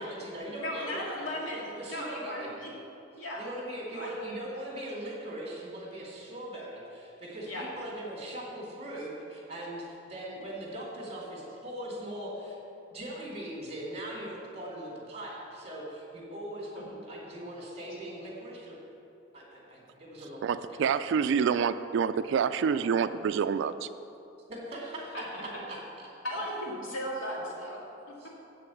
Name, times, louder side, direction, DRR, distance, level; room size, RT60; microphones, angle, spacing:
voice 1, 0.0-1.3 1.7-2.5 3.4-12.5 12.9-18.8 19.3-20.8 24.5-26.1 26.3-26.4 28.2-28.3, right 1 dB, 35° right, -4 dB, 2.7 m, -40 dB
voice 2, 0.6-2.7 3.2-3.4 3.9-4.1 7.4-7.7 16.8-16.9 25.1-25.4 26.2-27.8, equal, 85° left, -4 dB, 2.3 m, -36 dB
voice 3, 20.4-23.9, right 6 dB, 65° right, 12 dB, 0.3 m, -27 dB
8.4 x 6.6 x 7.1 m, 2.8 s
head